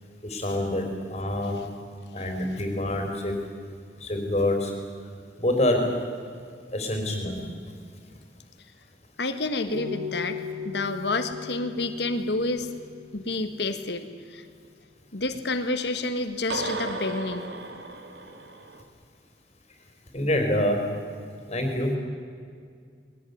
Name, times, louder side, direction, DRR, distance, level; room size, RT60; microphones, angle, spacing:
voice 1, 0.2-1.6 2.1-3.4 4.0-4.7 5.4-5.9 6.7-7.4 20.1-20.8 21.5-22.0, left 1 dB, 35° left, 3 dB, 4.0 m, -26 dB
voice 2, 9.2-12.7 13.1-14.4 15.1-17.5, left 2 dB, 70° left, 8 dB, 1.5 m, -29 dB
sound 1, 9.7-14.0 16.5-18.8, left 1 dB, 70° right, 2.8 m, -36 dB
22.0 x 19.0 x 9.6 m, 2.2 s
head